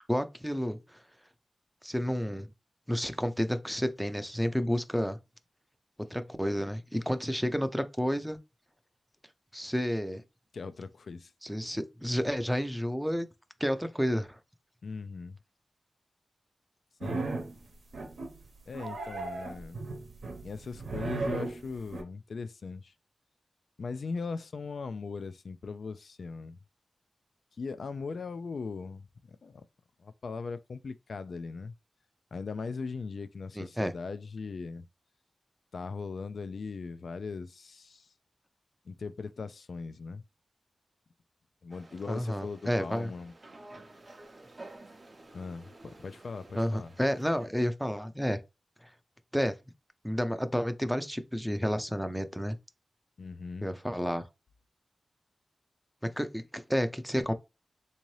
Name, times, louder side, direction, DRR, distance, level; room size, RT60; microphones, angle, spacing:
voice 1, 0.1-1.0 1.8-2.5 2.9-5.2 6.1-8.4 9.5-10.2 11.4-13.3 13.6-14.4 33.6-33.9 42.1-43.1 46.5-48.4 48.8-48.9 49.3-49.6 50.0-52.6 53.6-54.3 56.2-57.3, equal, ahead, 0.5 m, -30 dB
voice 2, 10.5-11.3 14.8-15.4 17.0-17.2 18.7-19.8 20.4-22.9 23.8-26.6 27.6-29.6 30.0-31.7 32.3-34.9 35.7-38.1 38.9-40.2 41.6-43.3 45.3-46.9 53.2-53.7, left 4 dB, 75° left, 0.3 m, -39 dB
sound 1, 17.0-17.6 17.9-18.4 18.7-22.0, right 3 dB, 85° right, 0.8 m, -36 dB
sound 2, 41.7-47.5, right 2 dB, 45° right, 0.6 m, -52 dB
3.6 x 2.7 x 3.1 m
wide cardioid pair, 75°, 0 cm